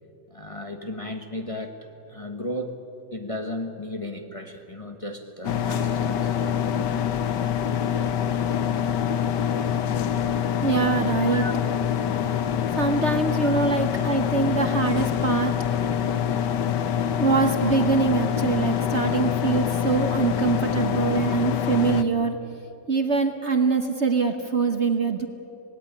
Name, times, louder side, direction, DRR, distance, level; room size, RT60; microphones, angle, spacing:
voice 1, 0.3-1.8 2.1-2.8 3.1-6.4 13.4-13.5, left 1 dB, 20° left, 4 dB, 1.4 m, -35 dB
sound 1, 5.4-22.0, left 9 dB, 80° left, 1.6 m, -25 dB
voice 2, 10.6-11.4 12.8-15.5 17.2-22.4 22.9-25.3, right 4 dB, 45° right, 6 dB, 1.3 m, -23 dB
26.0 x 19.0 x 9.9 m, 2.8 s
omnidirectional pair, 1.9 m